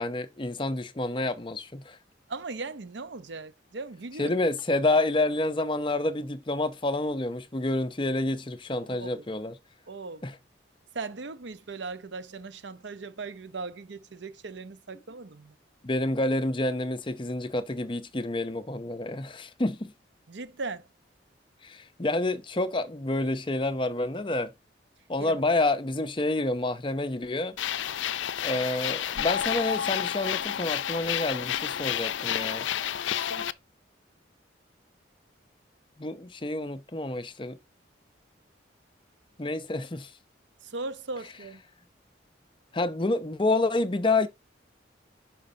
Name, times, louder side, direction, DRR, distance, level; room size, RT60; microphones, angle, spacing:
voice 1, 0.0-2.0 4.2-9.6 10.2-10.4 15.8-19.9 21.6-24.5 25.1-27.6 28.4-32.7 36.0-37.6 39.4-40.1 42.7-44.3, left 2 dB, 25° left, 0.6 m, -28 dB
voice 2, 2.3-4.3 8.9-9.2 9.9-10.3 10.9-15.5 20.3-20.9 25.2-25.4 33.3-33.5 40.6-41.6, right 3 dB, 70° right, 0.7 m, -38 dB
sound 1, 27.6-33.5, left 10 dB, 75° left, 0.4 m, -30 dB
10.5 x 5.1 x 2.7 m
head